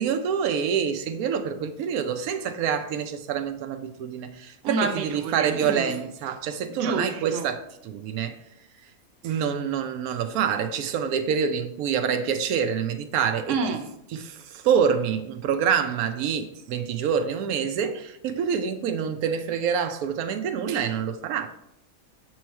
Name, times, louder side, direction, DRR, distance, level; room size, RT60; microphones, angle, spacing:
voice 1, 0.0-8.3 9.2-13.5 14.1-21.5, right 7 dB, 85° right, 1.0 m, -26 dB
voice 2, 4.6-5.9 6.8-7.5 13.5-13.9, right 3 dB, 65° right, 1.0 m, -29 dB
6.9 x 3.1 x 4.5 m
omnidirectional pair, 1.5 m